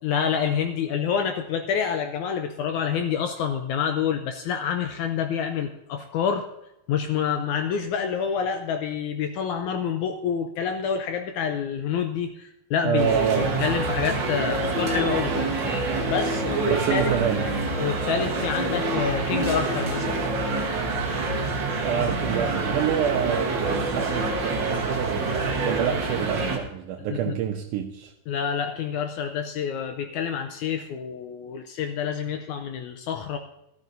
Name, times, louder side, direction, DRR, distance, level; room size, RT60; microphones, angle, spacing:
voice 1, 0.0-6.5 6.9-15.4 16.1-17.0 17.7-20.2 27.1-27.4 28.3-33.4, left 7 dB, 80° left, 1.9 m, -27 dB
voice 2, 12.8-13.5 16.7-17.5 21.8-28.1, right 9 dB, 80° right, 2.1 m, -27 dB
sound 1, 13.0-26.6, right 3 dB, 55° right, 1.3 m, -26 dB
13.0 x 13.0 x 2.7 m
omnidirectional pair, 3.8 m